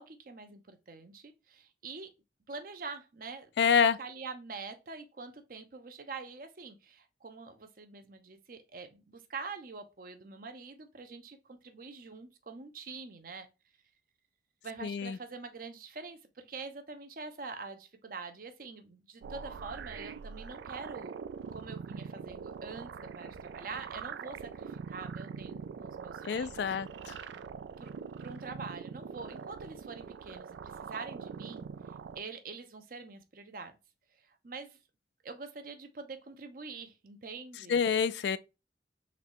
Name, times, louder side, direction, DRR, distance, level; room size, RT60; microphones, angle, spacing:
voice 1, 0.0-2.1 2.5-3.5 3.8-13.5 14.6-21.2 21.5-26.7 27.8-27.9 28.2-33.8 34.2-34.8 35.2-37.8, right 4 dB, 50° right, 0.7 m, -45 dB
voice 2, 3.6-4.0 14.8-15.2 26.2-27.2 37.7-38.4, left 6 dB, 75° left, 0.3 m, -27 dB
sound 1, 19.2-32.2, right 6 dB, 80° right, 0.3 m, -43 dB
4.0 x 3.1 x 3.0 m
head